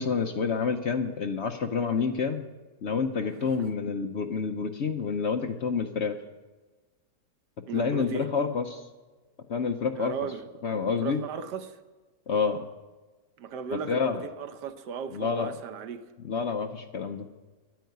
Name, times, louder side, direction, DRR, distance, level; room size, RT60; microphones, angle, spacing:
voice 1, 0.0-2.5 2.8-6.2 7.7-8.9 9.5-10.1 10.6-11.2 12.3-12.7 13.7-14.2 15.1-15.5 16.2-17.3, left 5 dB, 60° left, 0.8 m, -28 dB
voice 2, 3.2-3.7 7.7-8.3 10.0-10.4 11.0-11.8 13.4-16.1, right 7 dB, 85° right, 1.5 m, -37 dB
12.0 x 9.2 x 9.3 m
omnidirectional pair, 1.8 m